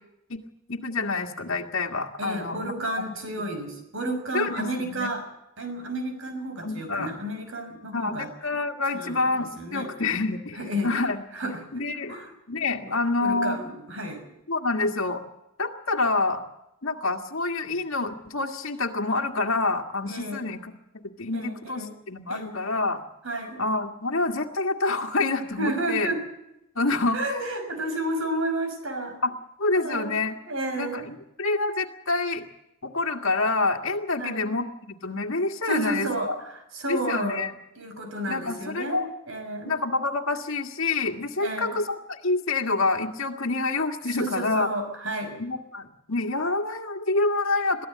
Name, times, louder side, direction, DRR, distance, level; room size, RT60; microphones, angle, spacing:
voice 1, 0.7-2.7 3.0-3.2 4.3-5.1 6.6-7.1 7.9-11.2 11.7-12.2 12.5-13.6 14.5-15.2 15.6-16.4 16.8-20.7 21.2-23.0 23.6-26.1 26.8-27.3 29.2-29.3 29.6-30.4 30.8-32.5 32.8-36.4 36.9-37.5 38.3-39.1 39.7-44.7 45.4-47.9, left 3 dB, 70° left, 2 dB, 1.9 m, -27 dB
voice 2, 2.2-5.3 5.6-8.3 8.9-9.2 9.6-9.9 10.6-10.9 11.3-11.6 12.1-12.3 12.8-14.3 20.1-20.5 21.3-21.9 22.3-22.6 23.2-23.6 25.6-26.2 27.1-29.2 29.7-30.2 30.5-31.1 34.2-34.5 35.6-37.4 37.8-39.7 41.4-41.8 44.1-45.4, right 1 dB, 65° right, 7 dB, 5.9 m, -31 dB
22.5 x 15.0 x 8.6 m, 0.86 s
head